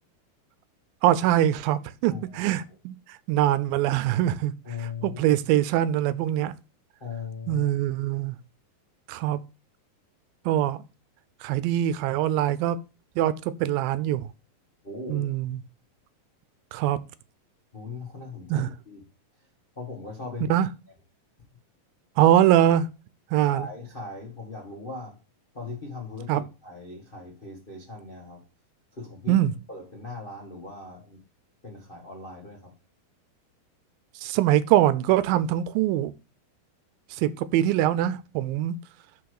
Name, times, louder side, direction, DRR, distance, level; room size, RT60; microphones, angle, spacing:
voice 1, 1.0-2.9 3.3-4.5 5.0-6.5 7.5-8.4 9.1-9.4 10.5-10.8 11.4-12.8 13.2-13.3 13.6-14.3 15.1-15.6 16.7-17.0 18.5-18.7 20.5-20.7 22.2-22.9 23.3-23.7 26.3-26.4 29.3-29.5 34.2-36.1 37.1-38.8, right 12 dB, 85° right, 2.3 m, -23 dB
voice 2, 2.1-2.4 4.6-5.3 7.0-7.7 14.8-15.3 17.7-19.0 19.7-20.5 23.5-25.2 25.5-28.4 28.9-29.3 29.7-31.2 31.6-32.7, left 4 dB, 45° left, 0.6 m, -39 dB
5.8 x 4.7 x 6.4 m
omnidirectional pair, 4.1 m